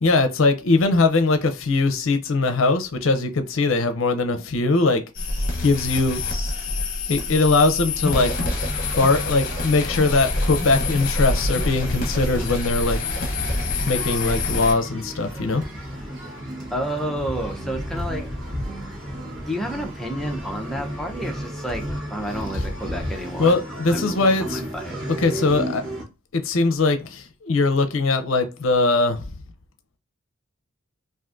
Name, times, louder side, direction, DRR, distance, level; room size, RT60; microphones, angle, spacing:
voice 1, 0.0-5.0 5.6-6.2 7.1-8.4 9.0-13.0 13.9-15.6 22.5-22.6 23.4-24.6 25.1-25.8 26.3-29.2, left 3 dB, 70° left, 0.5 m, -21 dB
sound 1, 5.2-14.7, left 2 dB, 40° left, 0.9 m, -26 dB
sound 2, 8.1-26.0, equal, 60° right, 1.1 m, -33 dB
voice 2, 16.7-18.3 19.4-21.8 22.1-23.5 23.9-24.0 24.7-25.0, equal, ahead, 0.5 m, -30 dB
3.6 x 2.5 x 2.4 m
head